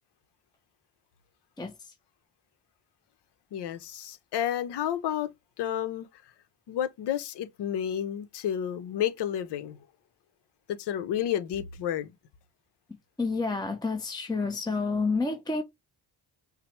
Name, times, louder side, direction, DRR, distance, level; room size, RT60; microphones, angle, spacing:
voice 1, 3.5-6.1 6.7-9.9 10.7-12.1, left 10 dB, 65° left, 0.7 m, -31 dB
voice 2, 13.2-15.6, left 3 dB, 10° left, 0.6 m, -29 dB
5.7 x 2.0 x 3.1 m
supercardioid pair, 60°, 44 cm